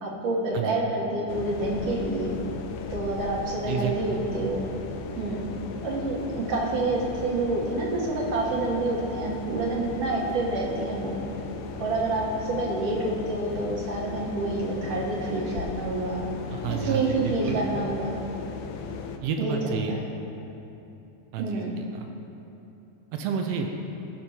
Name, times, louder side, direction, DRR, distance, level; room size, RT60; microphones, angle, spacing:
voice 1, 0.0-2.3 2.9-4.7 5.2-5.4 5.8-11.2 11.8-16.3 16.8-18.2 19.4-19.6 19.9-20.0 21.4-21.8, right 2 dB, 60° right, -3 dB, 2.0 m, -28 dB
sound 1, 1.3-19.2, left 5 dB, 80° left, 1.9 m, -36 dB
voice 2, 16.5-17.6 19.2-20.1 21.3-22.1 23.1-23.7, right 6 dB, 75° right, 4 dB, 1.6 m, -30 dB
17.5 x 6.0 x 2.8 m, 2.9 s
omnidirectional pair, 3.4 m